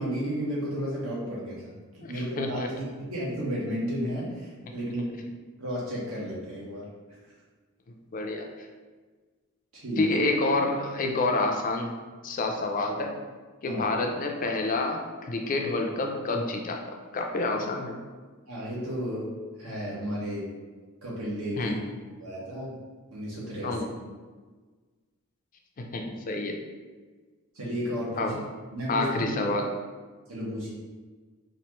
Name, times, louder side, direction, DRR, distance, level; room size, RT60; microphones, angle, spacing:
voice 1, 0.0-5.2 5.6-6.9 9.7-10.0 13.7-13.9 18.5-20.5 21.0-21.8 22.2-22.8 23.1-23.8 27.5-28.3 28.7-29.5 30.3-30.7, equal, 75° right, -6 dB, 1.3 m, -33 dB
voice 2, 2.0-2.7 8.1-8.7 10.0-11.9 12.2-13.2 13.6-18.0 21.6-21.8 23.6-23.9 25.8-26.6 28.2-28.4 28.9-29.7, left 2 dB, 40° left, 3 dB, 0.4 m, -28 dB
4.3 x 2.5 x 3.0 m, 1.4 s
head